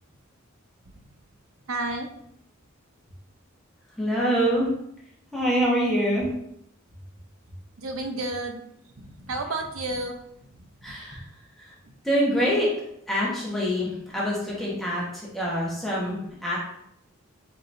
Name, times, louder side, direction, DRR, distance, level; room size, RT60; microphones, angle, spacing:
voice 1, 1.7-2.1 7.8-10.2 10.5-10.7 11.8-11.9, right 2 dB, 80° right, 4 dB, 0.7 m, -32 dB
voice 2, 4.0-4.7 5.3-6.3 10.8-11.2 11.6-11.7 12.0-12.7 13.1-16.6, equal, ahead, -7 dB, 1.1 m, -25 dB
4.6 x 3.9 x 2.6 m, 0.75 s
head